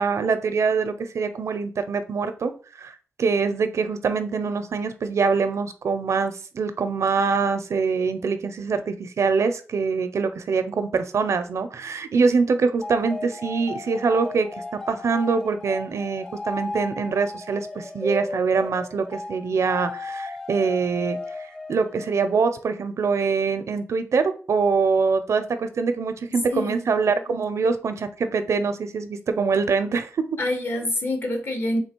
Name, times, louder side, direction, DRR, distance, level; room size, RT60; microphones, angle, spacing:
voice 1, 0.0-2.5 2.8-21.2 21.7-30.1, right 5 dB, 75° right, 0.5 m, -24 dB
sound 1, 12.8-22.6, left 2 dB, 15° left, 0.5 m, -35 dB
voice 2, 26.3-26.8 27.1-27.4 30.4-31.8, left 1 dB, 50° left, 0.9 m, -27 dB
3.6 x 2.8 x 4.4 m
wide cardioid pair, 100°, 5 cm